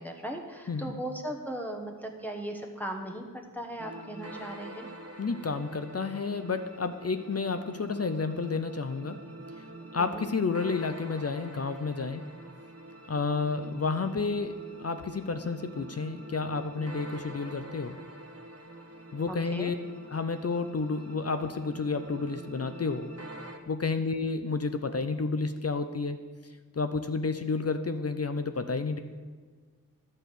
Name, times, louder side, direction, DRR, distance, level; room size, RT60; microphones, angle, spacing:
voice 1, 0.0-3.2 3.5-4.9 9.9-10.2 19.3-19.7, right 1 dB, 5° left, 2 dB, 1.2 m, -38 dB
voice 2, 0.7-1.0 5.2-9.2 9.9-12.2 13.1-18.0 19.1-19.7 20.1-23.1 23.7-26.2 26.7-29.0, left 4 dB, 45° left, 9 dB, 0.6 m, -31 dB
sound 1, 3.8-23.6, right 1 dB, 45° right, 1.1 m, -46 dB
11.0 x 4.3 x 8.0 m, 1.5 s
wide cardioid pair, 45°, 35 cm